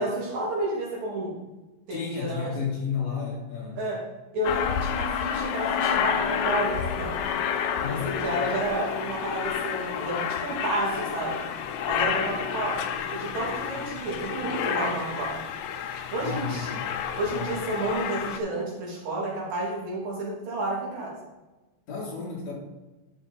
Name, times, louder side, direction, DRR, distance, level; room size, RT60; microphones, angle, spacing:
voice 1, 0.0-1.3 1.9-2.5 3.8-4.0 4.3-7.1 7.9-11.3 11.8-15.4 16.1-16.7 17.2-21.2, right 1 dB, 70° right, -5 dB, 4.4 m, -31 dB
voice 2, 1.9-3.8 7.8-8.1 13.7-13.8 16.1-16.8 17.3-17.6 21.9-22.5, left 5 dB, 55° left, -4 dB, 3.2 m, -32 dB
Aircraft, 4.4-18.4, left 8 dB, 80° left, 1.7 m, -30 dB
12.0 x 5.9 x 4.1 m, 1.1 s
omnidirectional pair, 4.0 m